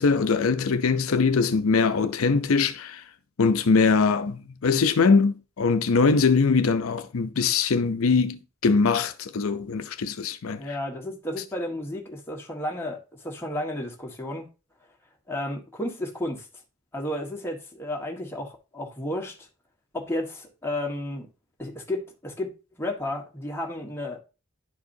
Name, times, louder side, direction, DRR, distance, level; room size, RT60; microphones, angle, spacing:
voice 1, 0.0-3.0 3.4-10.7, left 4 dB, 80° left, 0.5 m, -22 dB
voice 2, 10.6-14.5 15.3-16.5 16.9-19.5 19.9-21.3 21.6-22.5 22.8-24.2, left 1 dB, 10° left, 1.5 m, -32 dB
11.0 x 4.7 x 2.7 m
head